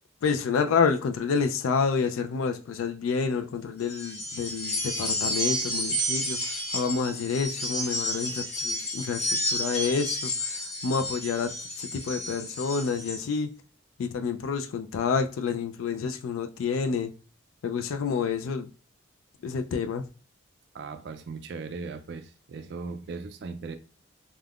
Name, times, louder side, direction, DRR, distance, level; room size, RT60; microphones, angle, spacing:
voice 1, 0.2-13.5 14.0-17.1 17.6-18.7 19.4-20.1, left 5 dB, 90° left, 0.3 m, -28 dB
sound 1, 3.8-13.2, equal, 35° left, 0.7 m, -31 dB
voice 2, 20.7-23.8, right 4 dB, 55° right, 0.3 m, -38 dB
3.4 x 2.2 x 2.3 m
head